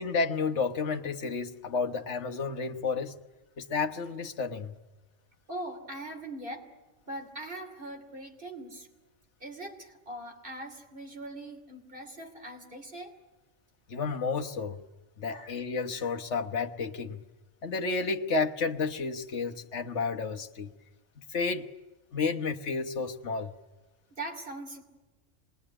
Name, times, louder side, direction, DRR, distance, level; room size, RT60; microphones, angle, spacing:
voice 1, 0.0-3.1 3.6-4.7 13.9-14.8 15.2-17.2 17.6-20.7 21.3-21.7 22.1-23.5, left 4 dB, 65° left, 4 dB, 1.5 m, -31 dB
voice 2, 5.5-6.7 7.1-8.9 9.4-13.1 15.3-15.5 24.2-24.8, right 1 dB, 45° right, 3 dB, 3.1 m, -41 dB
27.0 x 20.5 x 9.9 m, 1.2 s
omnidirectional pair, 1.3 m